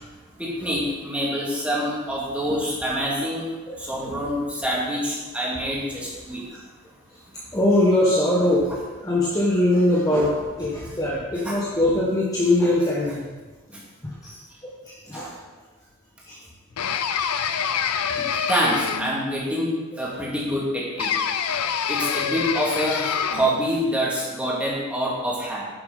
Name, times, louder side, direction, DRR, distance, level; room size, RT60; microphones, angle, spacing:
voice 1, 0.4-3.4 3.9-6.4 8.7-8.8 11.4-11.6 18.5-19.7 20.0-21.1 21.9-25.6, equal, 5° right, -6 dB, 2.2 m, -26 dB
voice 2, 3.7-4.1 7.5-13.2 14.2-15.3 16.3-16.4 18.1-18.3 20.1-20.2 24.5-24.6, left 1 dB, 15° left, -6 dB, 1.2 m, -22 dB
sound 1, 16.8-19.3 21.0-23.6, left 7 dB, 90° left, 0.6 m, -26 dB
10.0 x 7.0 x 4.0 m, 1.2 s
head